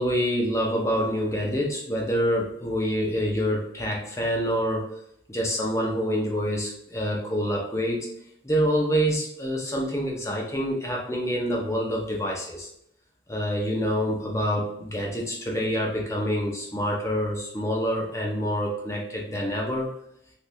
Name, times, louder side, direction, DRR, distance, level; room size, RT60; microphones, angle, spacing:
voice 1, 0.0-4.9 5.3-8.1 8.4-12.7 13.3-19.9, equal, 15° left, -2 dB, 0.7 m, -26 dB
3.4 x 2.5 x 2.7 m, 0.73 s
head